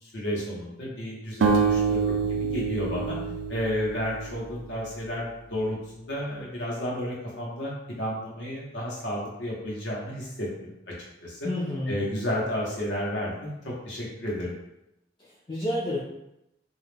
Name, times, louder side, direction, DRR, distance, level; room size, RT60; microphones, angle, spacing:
voice 1, 0.0-3.2 3.5-10.7 11.2-11.5 11.9-14.5, equal, 75° left, -5 dB, 0.8 m, -32 dB
sound 1, 1.4-4.6, right 5 dB, 90° right, 0.3 m, -26 dB
voice 2, 11.4-12.0 15.2-16.0, left 1 dB, 25° left, -7 dB, 0.3 m, -30 dB
2.3 x 2.0 x 3.2 m, 0.86 s
head